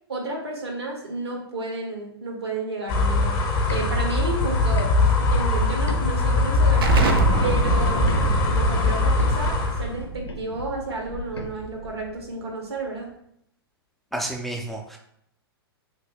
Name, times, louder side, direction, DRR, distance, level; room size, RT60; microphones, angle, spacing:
voice 1, 0.1-3.3 3.7-7.0 7.4-13.1, right 2 dB, 80° right, 0 dB, 1.1 m, -32 dB
sound 1, 2.9-9.9, left 3 dB, 30° left, 0.7 m, -21 dB
sound 2, 3.5-7.1 7.5-11.5, left 3 dB, 85° left, 0.5 m, -35 dB
Explosion, 6.8-12.2, right 4 dB, 65° right, 0.5 m, -26 dB
voice 2, 14.1-15.0, right 1 dB, ahead, 1 dB, 0.3 m, -30 dB
3.1 x 2.6 x 3.4 m, 0.73 s
figure-of-eight pair, 110°, 13 cm